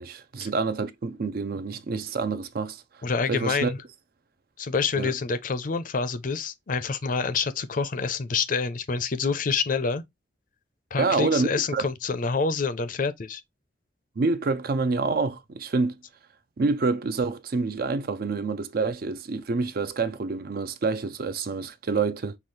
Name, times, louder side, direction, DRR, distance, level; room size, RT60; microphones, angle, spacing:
voice 1, 0.0-2.8 3.3-3.7 5.0-5.1 11.0-11.9 14.2-16.0 16.6-22.4, right 4 dB, 55° right, 0.4 m, -27 dB
voice 2, 3.0-3.8 4.6-10.0 10.9-13.4, left 5 dB, 45° left, 0.5 m, -27 dB
5.6 x 2.3 x 3.1 m
head